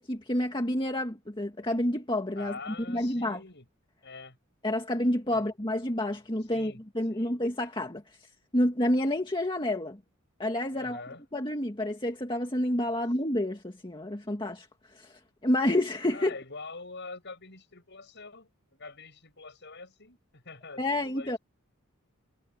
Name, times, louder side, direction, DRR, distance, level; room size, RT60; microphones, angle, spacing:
voice 1, 0.0-3.4 4.6-10.0 10.4-11.0 11.3-14.7 14.9-16.4 20.8-21.4, left 1 dB, 20° left, 1.9 m, -29 dB
voice 2, 2.4-3.6 4.0-4.4 5.3-5.4 6.5-6.8 7.1-7.3 10.7-11.2 12.9-13.1 16.1-21.4, left 3 dB, 50° left, 8.0 m, -45 dB
head